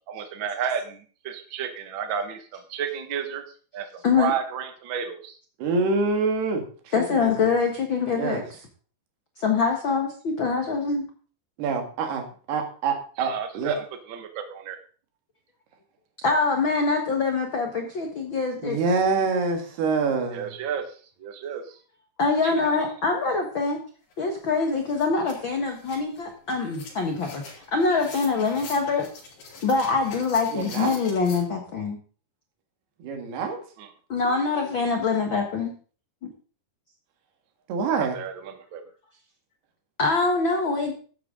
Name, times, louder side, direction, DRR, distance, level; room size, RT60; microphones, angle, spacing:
voice 1, 0.1-3.4 3.7-3.9 4.2-5.4 13.2-14.8 20.3-20.8 21.2-21.8 22.4-22.7 33.8-33.9 38.0-38.8, right 7 dB, 55° right, 6 dB, 1.3 m, -32 dB
voice 2, 5.6-7.5 8.1-8.4 11.6-13.8 18.6-20.5 30.5-30.9 33.0-33.6 34.2-34.6 37.7-38.2, right 4 dB, 80° right, 5 dB, 4.0 m, -26 dB
voice 3, 6.9-8.4 9.4-11.1 16.2-18.8 22.2-23.8 24.2-27.4 27.7-29.1 29.6-32.0 34.1-35.7 36.2-36.3 40.0-40.9, left 4 dB, 65° left, 3 dB, 1.2 m, -24 dB
sound 1, 24.1-24.2 24.5-31.4, left 3 dB, 90° left, 6.4 m, -44 dB
13.5 x 10.5 x 3.8 m, 0.40 s
omnidirectional pair, 4.6 m